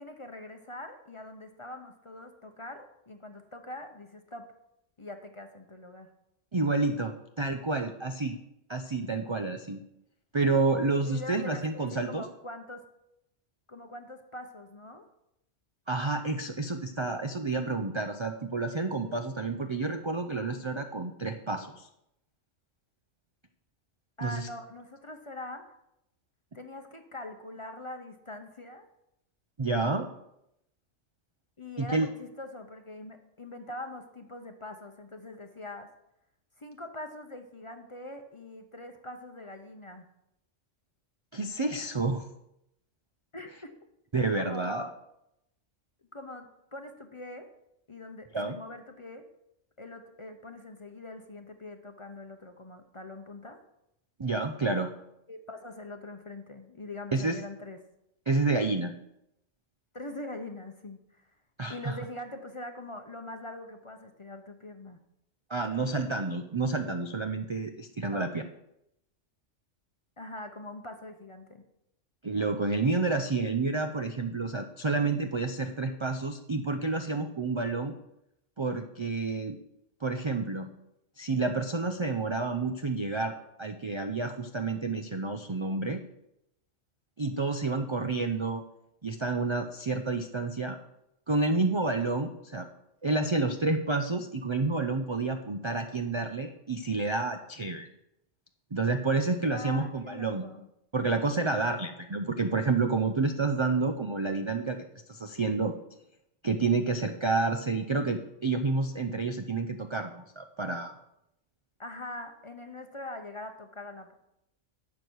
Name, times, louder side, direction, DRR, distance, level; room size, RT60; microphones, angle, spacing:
voice 1, 0.0-4.5 5.0-6.1 11.0-12.8 13.7-15.1 24.2-25.6 26.5-28.9 31.6-35.9 36.6-40.1 43.3-43.8 44.3-44.9 46.1-47.5 47.9-49.2 49.8-53.6 55.3-57.8 59.9-61.2 61.7-65.0 68.0-68.3 70.2-71.6 99.5-100.7 111.8-114.1, left 1 dB, 30° left, 6 dB, 0.8 m, -43 dB
voice 2, 6.5-8.4 8.7-9.8 10.3-12.2 15.9-21.9 24.2-24.5 29.6-30.1 31.8-32.1 41.3-42.2 44.1-44.8 48.3-48.6 54.2-54.9 57.1-57.4 58.3-58.9 61.6-61.9 65.5-68.4 72.2-77.9 78.6-79.6 80.0-80.7 81.2-86.0 87.2-88.6 89.0-90.8 91.3-92.7 93.0-97.9 98.7-100.5 100.9-104.8 105.1-105.7 106.4-110.9, right 3 dB, 35° right, 5 dB, 0.4 m, -29 dB
12.0 x 8.0 x 4.6 m, 0.82 s
omnidirectional pair, 1.3 m